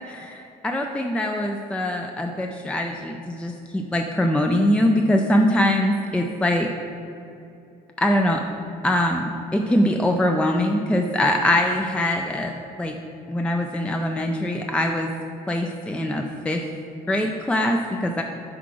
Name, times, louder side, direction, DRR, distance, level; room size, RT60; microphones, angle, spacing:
voice 1, 0.1-6.7 8.0-8.4 8.8-12.5 12.8-12.9 13.3-15.1 15.5-16.6 17.1-18.2, left 1 dB, 5° left, 3 dB, 0.4 m, -23 dB
6.1 x 4.6 x 6.0 m, 2.7 s
cardioid pair, 110°, 17 cm